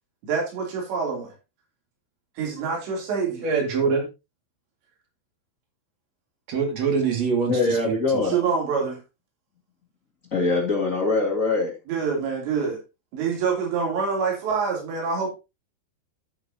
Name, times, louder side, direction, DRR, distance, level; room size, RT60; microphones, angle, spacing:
voice 1, 0.2-1.3 2.4-3.6 8.3-9.0 11.9-12.8 13.1-15.3, right 5 dB, 75° right, 5.3 m, -26 dB
voice 2, 3.4-4.1 6.5-8.2, right 5 dB, 45° right, 2.7 m, -24 dB
voice 3, 7.5-8.3 10.3-11.7, left 3 dB, 50° left, 0.9 m, -23 dB
11.0 x 7.9 x 2.8 m
omnidirectional pair, 5.1 m